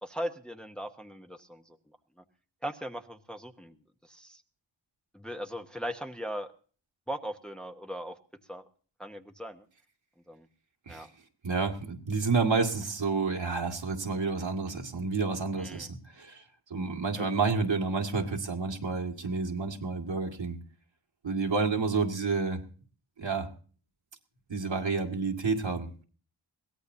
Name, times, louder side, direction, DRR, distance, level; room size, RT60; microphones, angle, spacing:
voice 1, 0.0-2.2 2.6-3.8 4.0-4.4 5.1-6.5 7.1-8.2 8.5-8.7 9.0-9.7 10.3-10.5 10.9-11.1 15.6-15.9 17.2-17.3, equal, ahead, 5 dB, 1.0 m, -39 dB
voice 2, 11.4-15.9 16.2-16.4 16.7-20.6 21.2-22.6 23.2-23.5 24.5-25.9, right 4 dB, 70° right, 3 dB, 2.1 m, -29 dB
22.0 x 17.0 x 2.7 m, 0.41 s
wide cardioid pair, 65°, 45 cm